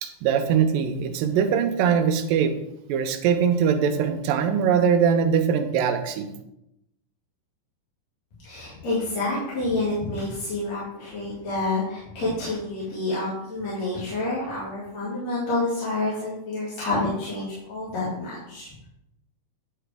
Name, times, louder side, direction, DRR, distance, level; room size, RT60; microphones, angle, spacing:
voice 1, 0.0-2.5 2.9-6.3, right 7 dB, 90° right, 8 dB, 2.4 m, -22 dB
voice 2, 8.4-18.7, left 2 dB, 55° left, -9 dB, 3.1 m, -28 dB
10.0 x 4.9 x 3.4 m, 0.84 s
omnidirectional pair, 3.9 m